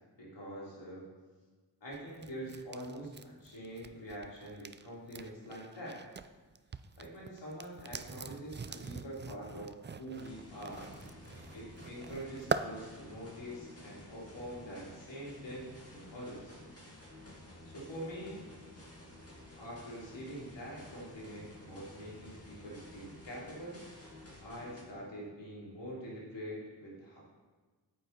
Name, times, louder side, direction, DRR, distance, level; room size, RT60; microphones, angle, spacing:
voice 1, 0.1-1.0 1.8-6.0 7.0-10.9 11.5-16.6 17.6-18.4 19.6-23.8 24.4-27.2, equal, 80° left, -6 dB, 3.4 m, -45 dB
sound 1, 1.9-6.3 6.5-12.7, right 5 dB, 25° right, 0.4 m, -42 dB
sound 2, 10.1-24.8, left 1 dB, 35° left, 2.4 m, -53 dB
8.9 x 8.4 x 4.2 m, 1.4 s
cardioid pair, 45°, 42 cm